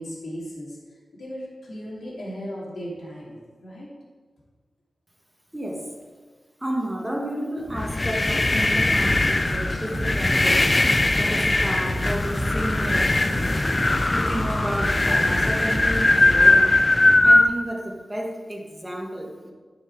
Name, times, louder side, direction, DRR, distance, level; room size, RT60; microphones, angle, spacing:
voice 1, 0.0-3.9, equal, 75° left, -6 dB, 2.7 m, -37 dB
voice 2, 5.5-5.9 6.6-10.7 11.2-13.3 14.1-16.8 17.2-19.5, right 1 dB, 15° right, 0 dB, 1.6 m, -32 dB
sound 1, 7.7-17.5, left 2 dB, 30° left, 0.5 m, -20 dB
sound 2, 9.0-16.7, equal, 55° right, 1.8 m, -33 dB
9.6 x 5.8 x 4.6 m, 1.4 s
wide cardioid pair, 75°, 0 cm